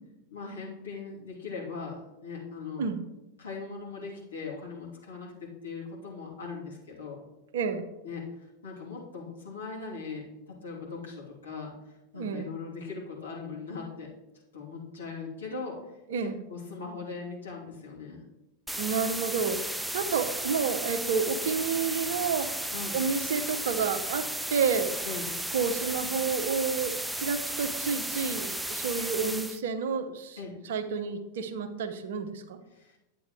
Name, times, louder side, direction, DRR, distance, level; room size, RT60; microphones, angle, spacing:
voice 1, 0.3-2.9 3.4-7.2 8.0-10.2 10.5-11.7 12.1-14.1 14.5-15.8 16.2-18.2 22.7-23.0 25.0-25.3 30.4-30.6 32.7-33.0, left 4 dB, 70° left, -5 dB, 3.0 m, -40 dB
voice 2, 7.5-7.9 12.1-12.5 16.1-16.4 18.8-22.5 22.9-24.9 25.5-30.4 30.6-32.6, right 5 dB, 60° right, 10 dB, 0.7 m, -30 dB
sound 1, 18.7-29.6, right 1 dB, 5° right, 0.4 m, -34 dB
10.5 x 8.4 x 3.1 m, 0.98 s
figure-of-eight pair, 90°, 0 cm